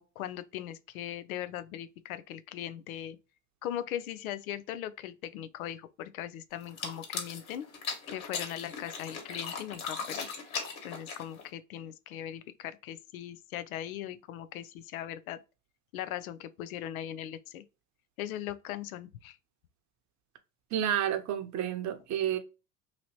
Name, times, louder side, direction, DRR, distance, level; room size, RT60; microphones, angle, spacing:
voice 1, 0.0-3.2 3.6-7.7 8.1-10.3 10.8-15.4 15.9-17.6 18.2-19.4, left 11 dB, 85° left, 0.5 m, -39 dB
sound 1, 6.6-11.5, left 5 dB, 55° left, 1.5 m, -38 dB
voice 2, 20.7-22.4, right 10 dB, 45° right, 0.8 m, -30 dB
3.0 x 2.8 x 2.8 m
hypercardioid pair, 80°, 41 cm